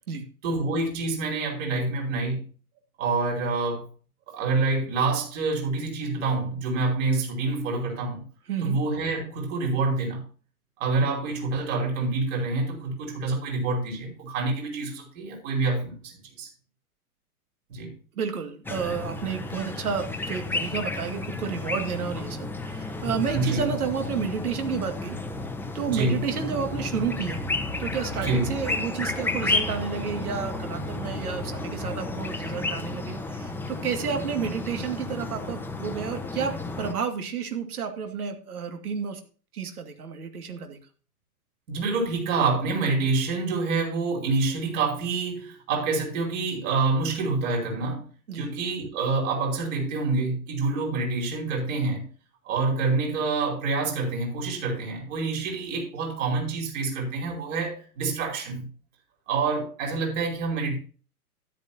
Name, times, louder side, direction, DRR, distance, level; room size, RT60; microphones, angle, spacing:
voice 1, 0.4-2.4 3.0-3.9 4.3-8.3 8.6-10.2 10.8-16.5 17.7-17.9 23.3-23.7 25.9-26.2 28.2-28.5 41.7-48.1 48.4-52.1 52.5-58.7 59.3-60.8, right 3 dB, 55° right, 5.4 m, -27 dB
voice 2, 8.5-8.8 11.0-11.1 18.2-25.2 25.7-27.4 27.8-39.2 39.5-40.8 48.3-48.5, right 6 dB, 70° right, 2.3 m, -31 dB
sound 1, 18.6-36.9, left 2 dB, 5° left, 1.1 m, -32 dB
13.0 x 10.0 x 2.9 m
figure-of-eight pair, 105°, 46 cm